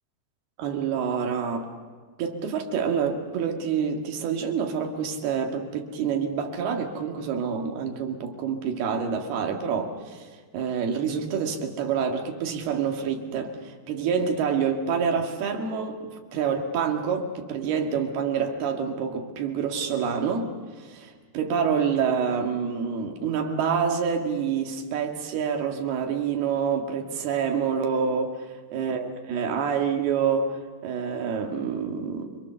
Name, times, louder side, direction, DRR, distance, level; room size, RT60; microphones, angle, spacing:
voice 1, 0.6-1.7 2.2-10.3 10.5-20.5 20.9-32.4, right 6 dB, 65° right, 3 dB, 3.7 m, -27 dB
29.0 x 23.5 x 6.9 m, 1.5 s
omnidirectional pair, 5.2 m